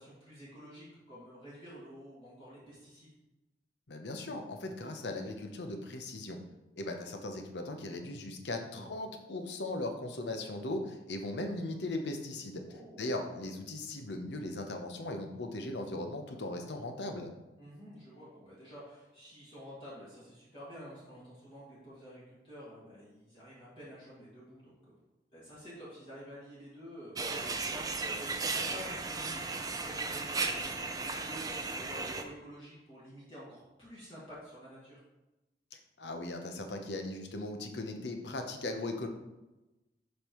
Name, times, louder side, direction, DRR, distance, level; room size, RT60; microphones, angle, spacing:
voice 1, 0.0-3.1 12.6-13.1 17.6-24.9 25.3-35.0, equal, 30° left, -9 dB, 2.1 m, -50 dB
voice 2, 3.9-6.4 6.8-12.6 13.0-17.3 35.7-39.1, left 2 dB, 75° left, 5 dB, 0.8 m, -38 dB
sound 1, 27.2-32.2, right 3 dB, 20° right, 0.4 m, -35 dB
7.8 x 5.3 x 3.1 m, 1.0 s
head